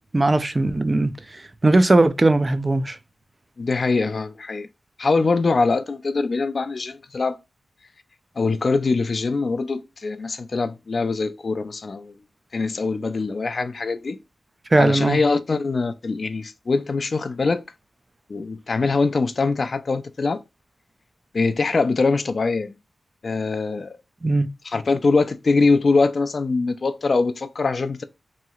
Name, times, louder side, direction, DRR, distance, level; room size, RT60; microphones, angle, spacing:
voice 1, 0.1-3.0 14.7-15.2 24.2-24.5, right 2 dB, 30° right, 0.4 m, -19 dB
voice 2, 3.6-4.7 5.0-7.4 8.4-12.1 12.5-14.2 14.8-17.6 18.3-20.4 21.3-22.7 23.2-24.0 24.7-28.0, left 3 dB, 55° left, 0.4 m, -23 dB
3.0 x 2.7 x 2.3 m
cardioid pair, 55°, 0 cm